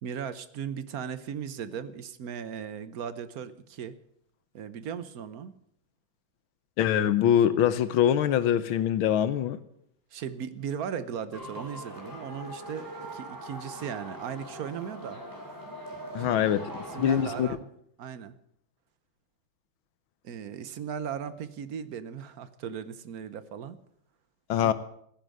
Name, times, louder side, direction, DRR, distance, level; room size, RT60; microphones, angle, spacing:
voice 1, 0.0-4.0 4.5-5.5 10.1-15.2 16.2-16.5 16.9-17.7 18.0-18.3 20.2-23.8 24.5-24.7, right 8 dB, 55° right, 14 dB, 1.1 m, -37 dB
voice 2, 6.8-9.6 16.1-16.6 17.0-17.5 24.5-24.7, left 10 dB, 85° left, 14 dB, 1.6 m, -23 dB
sound 1, 11.3-17.5, right 1 dB, 10° right, 3.3 m, -41 dB
15.0 x 10.5 x 7.7 m, 0.70 s
omnidirectional pair, 2.2 m